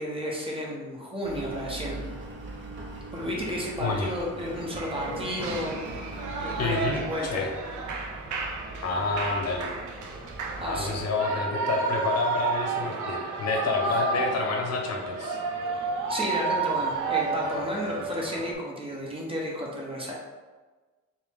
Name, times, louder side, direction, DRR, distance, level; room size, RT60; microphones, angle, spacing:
voice 1, 0.0-2.1 3.1-7.4 10.6-10.9 13.8-14.0 15.6-20.1, equal, 20° right, -3 dB, 1.0 m, -33 dB
Engine, 1.2-11.0, right 2 dB, 40° right, 0.8 m, -41 dB
voice 2, 3.8-4.1 6.6-7.5 8.8-9.7 10.6-15.4, left 3 dB, 55° left, 1 dB, 0.7 m, -29 dB
Shout / Cheering, 4.7-18.5, right 4 dB, 85° right, 0.6 m, -31 dB
4.5 x 2.2 x 3.6 m, 1.3 s
cardioid pair, 90°, 30 cm